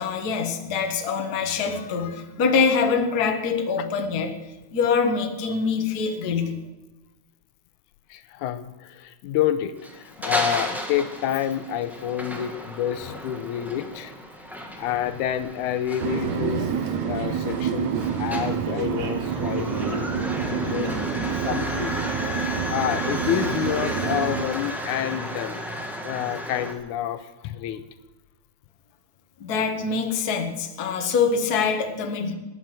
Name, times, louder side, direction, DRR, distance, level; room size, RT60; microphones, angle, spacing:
voice 1, 0.0-4.4 4.7-6.6 29.4-32.3, left 5 dB, 45° left, 5 dB, 1.3 m, -24 dB
voice 2, 8.1-14.1 14.8-16.7 17.1-21.2 21.4-22.4 22.7-25.6 26.0-27.8, left 10 dB, 85° left, 12 dB, 2.1 m, -28 dB
sound 1, 9.8-26.7, equal, ahead, 1.0 m, -33 dB
sound 2, 16.0-24.5, right 7 dB, 70° right, 2.4 m, -28 dB
19.0 x 7.5 x 7.6 m, 1.1 s
omnidirectional pair, 3.5 m